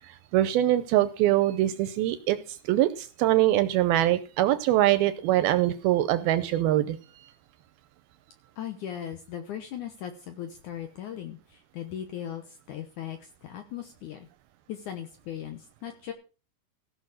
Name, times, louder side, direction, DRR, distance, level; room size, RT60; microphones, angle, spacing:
voice 1, 0.0-2.4 2.7-7.0, right 14 dB, 80° right, 12 dB, 2.2 m, -23 dB
voice 2, 8.6-14.3 14.7-16.1, left 10 dB, 75° left, 7 dB, 1.9 m, -38 dB
16.0 x 6.1 x 6.4 m, 0.35 s
omnidirectional pair, 5.0 m